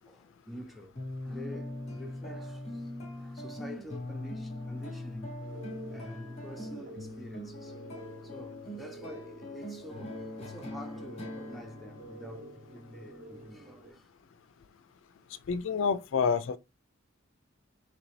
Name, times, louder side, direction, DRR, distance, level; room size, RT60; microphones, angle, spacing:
voice 1, 0.1-1.0 1.2-2.9 3.2-5.5 5.9-7.8 8.2-14.1, equal, ahead, 0.6 m, -47 dB
sound 1, 1.0-13.7, left 1 dB, 30° left, 0.9 m, -42 dB
sound 2, 5.4-13.9, right 1 dB, 35° right, 1.0 m, -49 dB
voice 2, 15.5-16.6, left 5 dB, 60° left, 0.3 m, -28 dB
3.9 x 3.2 x 3.1 m
head